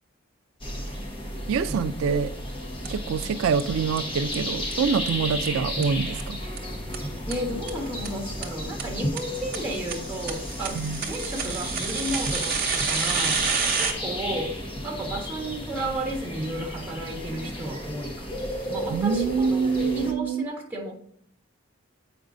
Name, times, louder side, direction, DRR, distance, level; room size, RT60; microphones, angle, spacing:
sound 1, 0.6-20.1, left 1 dB, 25° left, 1.0 m, -33 dB
voice 1, 1.5-2.3 2.9-6.4 10.8-11.0 18.9-20.5, right 6 dB, 85° right, 11 dB, 0.3 m, -25 dB
sound 2, 2.8-2.9 3.2-3.3 3.6-3.7 4.0-4.1 4.3-4.4 4.7-4.8 5.1-5.2 5.5-5.6 5.8-5.9 6.2-6.3 6.6-6.7 6.9-7.0 7.3-7.4 7.7-7.8 8.1-8.2 8.4-8.5 8.8-8.9 9.2-9.3 9.5-13.9, right 7 dB, 45° right, 0.8 m, -29 dB
voice 2, 7.3-13.4 13.8-14.6 14.8-18.3 18.7-20.9, right 1 dB, 10° right, -2 dB, 1.5 m, -33 dB
7.8 x 5.1 x 2.5 m, 0.66 s
head